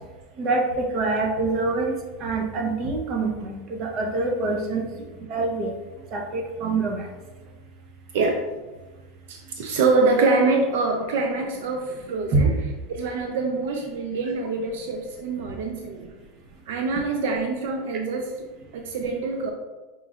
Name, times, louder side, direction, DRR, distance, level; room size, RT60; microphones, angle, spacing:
voice 1, 0.4-2.0 2.2-4.9 5.3-5.7 6.1-7.1 12.3-12.4, right 3 dB, 40° right, 1 dB, 0.7 m, -25 dB
voice 2, 9.3-12.5 12.9-16.1 16.7-18.5 18.7-19.5, right 3 dB, 70° right, 3 dB, 0.5 m, -25 dB
5.0 x 3.0 x 2.4 m, 1.2 s
supercardioid pair, 150°, 0 cm